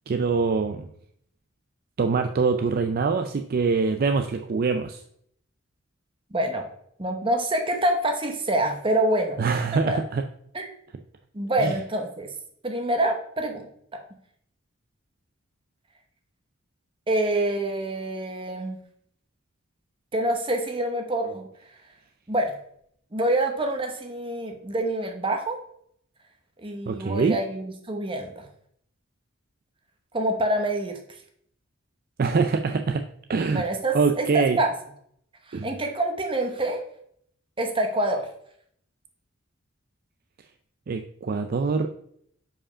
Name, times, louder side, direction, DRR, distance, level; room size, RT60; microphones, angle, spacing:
voice 1, 0.1-0.8 2.0-5.0 9.4-10.2 11.6-11.7 26.9-27.4 32.2-33.0 33.3-33.6 33.9-34.6 35.5-35.7 40.9-41.9, right 4 dB, 45° right, 7 dB, 0.4 m, -24 dB
voice 2, 6.3-6.6 7.0-9.4 9.9-10.0 10.5-10.7 11.3-12.3 12.6-14.0 17.1-18.8 20.1-21.5 22.3-22.6 23.1-25.6 26.6-28.5 30.1-31.0 33.5-34.7 35.5-36.9 37.6-38.3, right 1 dB, 25° right, 4 dB, 0.9 m, -26 dB
5.0 x 4.9 x 5.5 m, 0.68 s
head